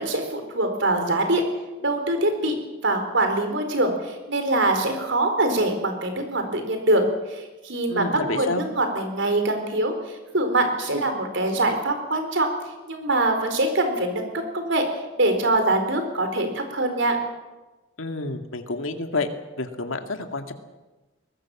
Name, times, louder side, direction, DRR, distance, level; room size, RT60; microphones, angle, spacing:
voice 1, 0.0-1.4 1.8-2.5 2.8-12.5 12.9-14.8 15.2-17.2, right 2 dB, 65° right, 6 dB, 4.4 m, -24 dB
voice 2, 7.9-8.6 18.0-19.3 19.6-20.5, left 3 dB, 85° left, 6 dB, 2.2 m, -29 dB
23.0 x 19.5 x 7.3 m, 1.1 s
head